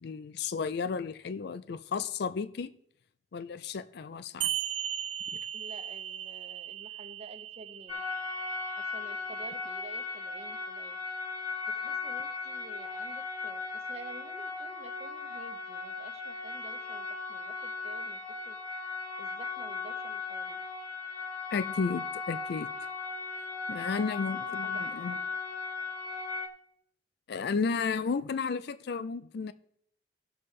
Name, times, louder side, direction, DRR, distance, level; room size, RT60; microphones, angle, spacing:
voice 1, 0.0-2.7 3.3-4.5 5.3-5.4 21.5-22.7 23.7-25.2 27.3-29.5, left 5 dB, 65° left, 0.4 m, -33 dB
sound 1, 4.4-9.4, right 11 dB, 80° right, 0.4 m, -37 dB
voice 2, 5.5-8.0 8.8-11.0 11.7-18.2 18.4-18.6 19.2-20.6 24.6-25.2, right 3 dB, 35° right, 0.8 m, -50 dB
sound 2, 7.9-26.5, left 4 dB, 35° left, 1.7 m, -37 dB
16.0 x 6.9 x 3.3 m
head